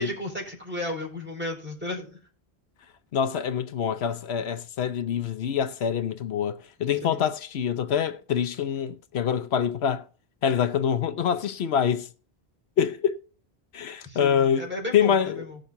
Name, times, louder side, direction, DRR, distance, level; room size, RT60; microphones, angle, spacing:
voice 1, 0.0-2.2 7.0-7.2 14.0-15.6, left 1 dB, 10° right, 4.3 m, -34 dB
voice 2, 3.1-10.0 10.4-12.1 12.8-13.2 13.7-14.7 14.9-15.4, left 8 dB, 90° left, 1.0 m, -25 dB
18.5 x 6.7 x 2.6 m
omnidirectional pair, 1.0 m